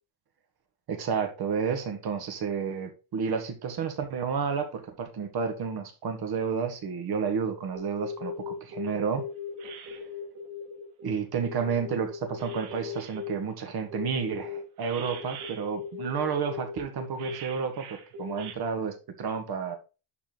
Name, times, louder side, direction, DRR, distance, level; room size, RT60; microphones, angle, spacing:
voice 1, 0.9-9.2 11.0-19.8, right 6 dB, 50° right, 1.8 m, -31 dB
sound 1, 7.7-13.3 13.9-18.5, left 4 dB, 75° right, 2.6 m, -38 dB
11.5 x 4.4 x 4.0 m
cardioid pair, 155°, 49 cm